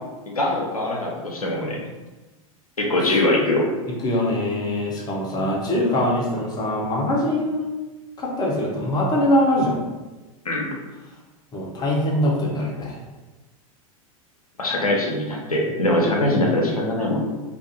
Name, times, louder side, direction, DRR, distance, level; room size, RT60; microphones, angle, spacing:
voice 1, 0.3-1.8 2.8-3.7 10.4-10.7 14.6-17.3, left 1 dB, 80° left, -2 dB, 0.6 m, -22 dB
voice 2, 4.0-7.7 8.2-9.8 11.5-13.0, left 1 dB, 20° left, -3 dB, 0.7 m, -22 dB
2.5 x 2.5 x 2.7 m, 1.2 s
figure-of-eight pair, 90°, 18 cm